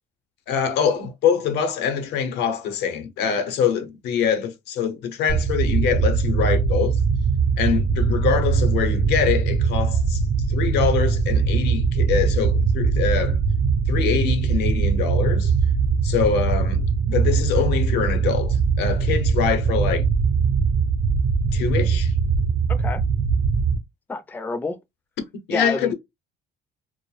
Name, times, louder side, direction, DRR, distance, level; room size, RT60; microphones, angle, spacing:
voice 1, 0.5-7.0 7.6-10.2 10.5-13.4 13.9-15.5 16.0-20.1 21.5-22.1 25.5-25.9, left 7 dB, 85° left, 0.7 m, -24 dB
sound 1, 5.3-23.8, right 5 dB, 50° right, 0.5 m, -21 dB
voice 2, 22.7-23.0 24.1-24.8 25.5-25.9, left 3 dB, 10° left, 0.4 m, -28 dB
2.2 x 2.0 x 3.0 m
cardioid pair, 110°, 17 cm